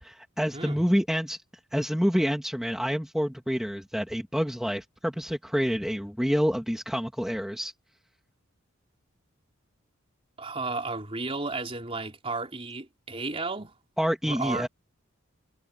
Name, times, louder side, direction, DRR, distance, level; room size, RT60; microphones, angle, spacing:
voice 1, 0.0-1.4 1.7-7.7 14.0-14.7, equal, ahead, 2.3 m, -27 dB
voice 2, 10.4-13.7 14.2-14.7, right 3 dB, 30° right, 4.1 m, -33 dB
head